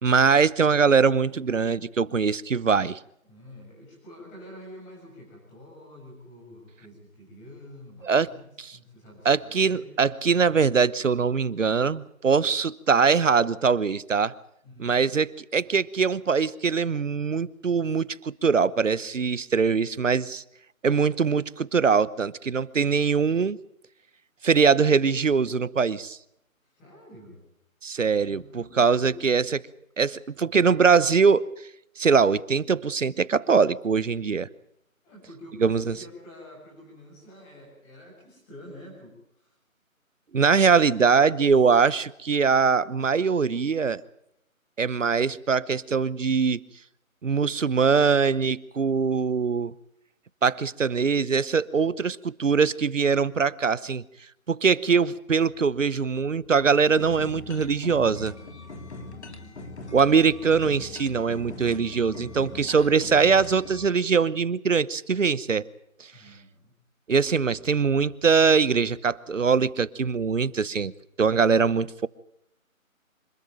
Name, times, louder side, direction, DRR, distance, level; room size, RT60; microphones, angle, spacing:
voice 1, 0.0-3.0 8.0-8.3 8.6-8.8 9.2-14.3 14.8-20.4 20.8-23.6 24.4-26.2 27.8-29.6 30.0-31.5 32.0-34.5 35.6-35.9 40.3-44.0 44.8-46.6 47.2-49.7 50.4-54.0 54.5-58.3 59.9-65.7 67.1-70.9 71.2-72.1, right 5 dB, 65° right, 21 dB, 1.0 m, -22 dB
voice 2, 3.2-9.9 14.6-15.0 26.7-27.4 28.2-29.1 35.0-39.6 40.4-41.5 58.9-59.6 66.1-66.7, left 1 dB, 10° left, -2 dB, 6.9 m, -47 dB
sound 1, 57.0-63.9, left 2 dB, 50° left, 2.8 m, -41 dB
26.0 x 13.5 x 9.0 m, 0.77 s
figure-of-eight pair, 165°, 42 cm